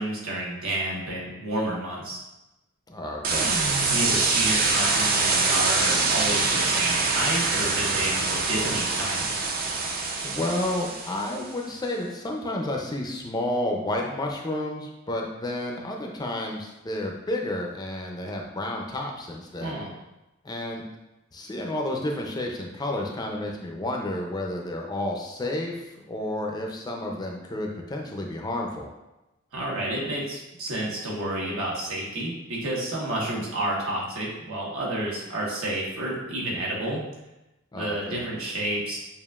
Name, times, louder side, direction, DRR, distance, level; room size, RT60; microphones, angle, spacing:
voice 1, 0.0-2.2 3.8-9.3 19.6-20.0 29.5-37.0 37.7-39.0, right 1 dB, 80° right, -4 dB, 1.2 m, -30 dB
voice 2, 2.9-3.5 10.2-19.7 20.4-20.8 21.3-28.9 37.7-38.3, left 1 dB, 20° left, 1 dB, 0.4 m, -31 dB
sound 1, 3.2-11.5, right 3 dB, 45° right, 0.5 m, -24 dB
7.1 x 2.4 x 2.3 m, 0.99 s
head